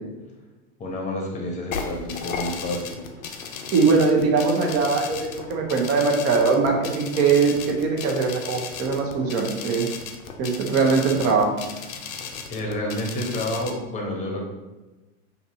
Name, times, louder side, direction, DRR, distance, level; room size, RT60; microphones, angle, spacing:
voice 1, 0.8-3.0 12.5-14.5, left 1 dB, 15° left, 0 dB, 0.9 m, -29 dB
sound 1, 1.7-13.7, left 6 dB, 85° left, 0.7 m, -35 dB
voice 2, 3.7-9.9 10.4-11.5, right 4 dB, 35° right, 1 dB, 0.9 m, -21 dB
5.7 x 2.7 x 2.8 m, 1.1 s
hypercardioid pair, 120°, 41 cm